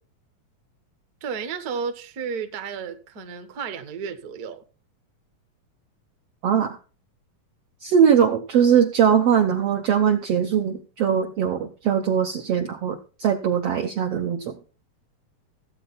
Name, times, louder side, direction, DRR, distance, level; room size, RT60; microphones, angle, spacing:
voice 1, 1.2-4.6, right 6 dB, 50° right, 1.1 m, -32 dB
voice 2, 6.4-6.8 7.8-14.5, right 8 dB, 70° right, 1.5 m, -21 dB
16.0 x 8.7 x 4.2 m
omnidirectional pair, 3.9 m